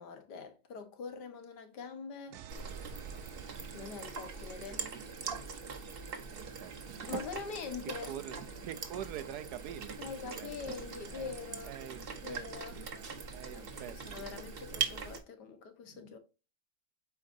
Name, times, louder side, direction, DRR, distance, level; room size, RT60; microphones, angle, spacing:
voice 1, 0.0-2.4 3.7-4.8 7.1-8.2 10.0-11.7 12.1-12.8 13.5-16.2, left 6 dB, 75° left, 1.7 m, -44 dB
sound 1, 2.3-5.2, right 8 dB, 90° right, 0.6 m, -50 dB
sound 2, 2.5-15.2, right 5 dB, 40° right, 0.9 m, -42 dB
voice 2, 6.3-7.2 8.1-10.1 10.3-10.8 11.1-11.3 11.6-14.4 15.9-16.2, right 10 dB, 75° right, 1.1 m, -45 dB
8.3 x 4.6 x 2.6 m
omnidirectional pair, 1.8 m